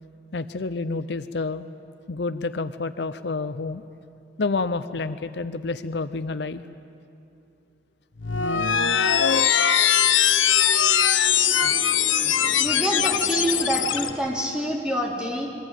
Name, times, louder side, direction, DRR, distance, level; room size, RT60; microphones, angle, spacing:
voice 1, 0.3-1.7 2.1-3.8 4.4-6.6, left 3 dB, 65° left, 12 dB, 0.6 m, -29 dB
sound 1, 8.2-14.1, left 9 dB, 90° left, 1.0 m, -21 dB
sound 2, 9.1-14.2, equal, 30° right, 4.1 m, -40 dB
voice 2, 12.6-15.5, equal, 5° right, -1 dB, 3.4 m, -26 dB
27.0 x 22.5 x 9.1 m, 2.7 s
head